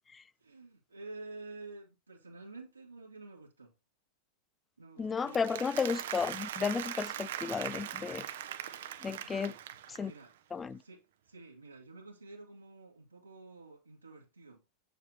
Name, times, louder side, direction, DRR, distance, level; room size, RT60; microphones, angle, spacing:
voice 1, 0.4-3.7 4.8-5.7 9.2-9.6 10.0-10.3 10.8-14.6, right 3 dB, 80° right, 1.9 m, -50 dB
voice 2, 5.0-8.2 9.0-9.5 10.0-10.1 10.5-10.8, left 5 dB, 15° left, 0.5 m, -33 dB
Applause, 5.2-10.2, right 11 dB, 60° right, 0.9 m, -41 dB
8.2 x 7.7 x 2.9 m
figure-of-eight pair, 90°, 0 cm